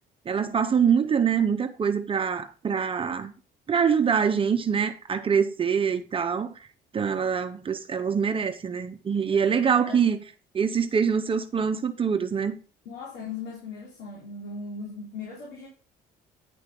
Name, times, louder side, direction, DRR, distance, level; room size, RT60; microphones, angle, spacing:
voice 1, 0.3-3.3 3.7-6.5 6.9-10.2 10.5-12.6, right 7 dB, 30° right, 0.8 m, -24 dB
voice 2, 9.3-10.0 12.9-15.7, left 3 dB, 80° left, 3.7 m, -38 dB
10.0 x 6.4 x 3.8 m
cardioid pair, 110°, 17 cm